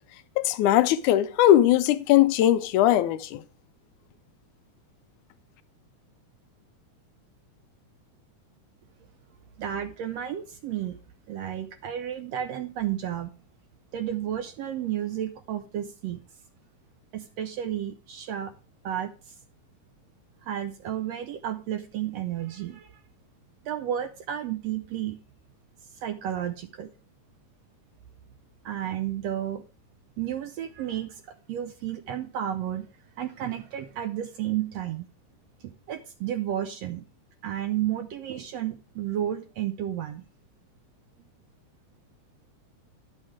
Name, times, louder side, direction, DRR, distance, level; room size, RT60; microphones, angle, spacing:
voice 1, 0.4-3.4, left 12 dB, 85° left, 2.1 m, -20 dB
voice 2, 9.6-11.0 11.3-13.3 13.9-16.2 17.1-18.5 18.8-19.4 20.4-23.0 23.6-25.2 25.9-26.9 28.6-29.6 30.2-32.9 33.2-35.1 35.6-37.0 37.4-40.2, right 11 dB, 75° right, 1.5 m, -32 dB
11.0 x 6.4 x 4.8 m
omnidirectional pair, 3.5 m